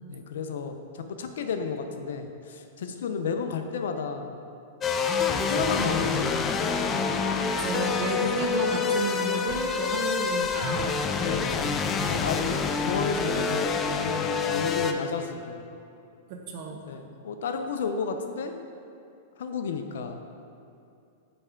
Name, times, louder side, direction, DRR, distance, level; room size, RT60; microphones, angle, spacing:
voice 1, 0.1-4.4 5.3-6.7 11.2-12.4 12.9-15.8 16.9-18.6 19.4-20.2, left 5 dB, 80° left, 6 dB, 0.5 m, -32 dB
sound 1, 4.8-14.9, left 5 dB, 20° left, 0.3 m, -27 dB
voice 2, 7.4-11.0 16.3-16.8, right 3 dB, 50° right, 2 dB, 0.6 m, -32 dB
8.1 x 3.3 x 3.6 m, 2.5 s
hypercardioid pair, 140°, 0 cm